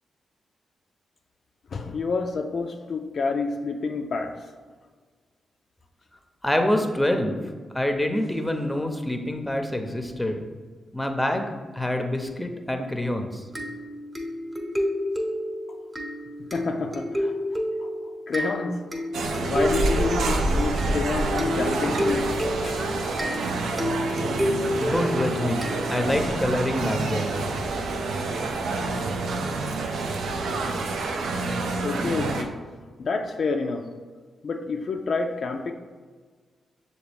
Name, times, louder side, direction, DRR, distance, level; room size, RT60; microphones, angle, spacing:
voice 1, 1.7-4.4 16.5-17.3 17.8-17.9 18.3-18.9 19.4-22.3 22.6-23.5 31.8-32.6 33.0-33.9 34.4-35.7, left 4 dB, 65° left, 3 dB, 0.3 m, -29 dB
voice 2, 6.4-7.4 7.7-10.4 10.9-11.5 11.7-13.4 24.8-27.4, left 1 dB, 10° left, 5 dB, 0.6 m, -26 dB
sound 1, 13.5-26.3, left 1 dB, 20° right, 0.9 m, -30 dB
sound 2, 19.1-32.4, right 3 dB, 75° right, 0.4 m, -27 dB
6.5 x 2.3 x 3.4 m, 1.5 s
supercardioid pair, 45°, 0 cm